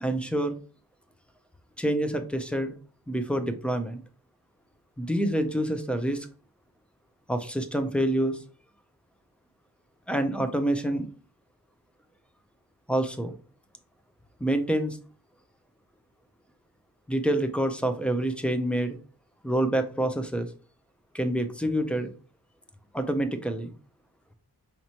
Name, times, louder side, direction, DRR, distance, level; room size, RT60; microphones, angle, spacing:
voice 1, 0.0-0.6 1.8-2.8 3.1-4.0 5.0-6.3 7.3-8.4 10.1-11.1 12.9-13.4 14.4-15.0 17.1-19.0 19.4-20.5 21.1-22.1 22.9-23.7, right 1 dB, 5° left, 8 dB, 0.5 m, -27 dB
5.1 x 2.9 x 2.8 m, 0.38 s
wide cardioid pair, 95°, 41 cm